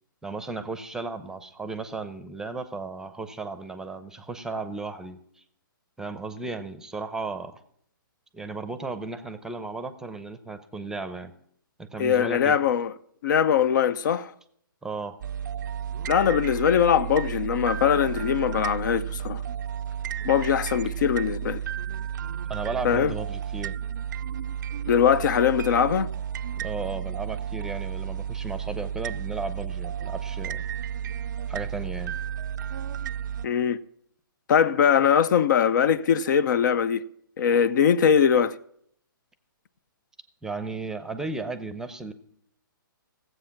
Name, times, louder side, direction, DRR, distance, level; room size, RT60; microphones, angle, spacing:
voice 1, 0.2-5.2 6.0-7.6 8.3-11.3 11.8-12.6 14.8-15.2 22.5-23.7 26.5-30.6 31.5-32.2 40.4-42.1, right 3 dB, 5° right, 0.7 m, -35 dB
voice 2, 12.0-12.9 13.2-14.3 16.1-19.4 20.2-21.6 22.8-23.1 24.9-26.1 33.4-33.8 34.5-37.0 37.4-38.6, left 8 dB, 60° left, 0.6 m, -21 dB
sound 1, 15.2-33.5, right 9 dB, 60° right, 0.4 m, -32 dB
17.0 x 7.8 x 5.9 m
hypercardioid pair, 140°, 12 cm